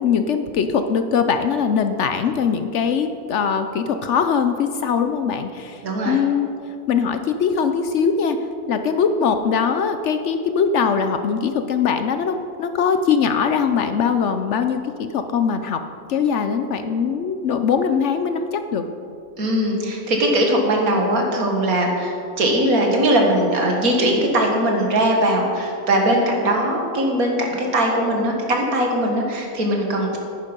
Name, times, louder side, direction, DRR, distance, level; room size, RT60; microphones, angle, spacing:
voice 1, 0.0-6.5 6.9-8.4 8.7-15.8 16.1-18.8, left 6 dB, 65° left, 8 dB, 0.8 m, -21 dB
voice 2, 5.8-6.2 19.4-30.2, right 1 dB, 80° right, 1 dB, 2.2 m, -20 dB
10.5 x 9.8 x 5.3 m, 2.5 s
omnidirectional pair, 1.5 m